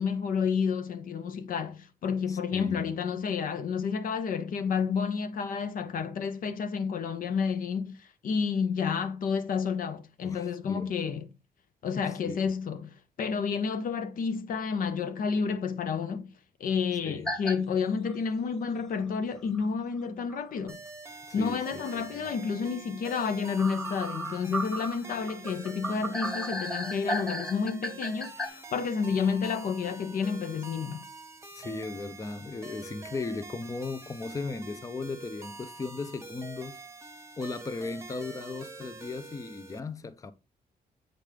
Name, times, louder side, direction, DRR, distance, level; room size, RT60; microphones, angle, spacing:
voice 1, 0.0-11.3 11.8-16.3 16.6-20.8 21.3-31.0, left 6 dB, 60° left, 0.6 m, -30 dB
voice 2, 2.3-2.9 10.2-10.9 11.9-12.4 17.0-17.3 21.3-22.3 31.5-36.8 37.4-40.3, left 3 dB, 20° left, 0.5 m, -37 dB
sound 1, 17.3-17.6 18.1-18.2 19.5-19.6 20.3-20.4 20.7-20.8 23.6-28.5, right 1 dB, 5° left, 1.2 m, -34 dB
sound 2, 20.7-39.8, right 3 dB, 20° right, 0.9 m, -46 dB
7.6 x 5.1 x 3.3 m
cardioid pair, 100°, 16 cm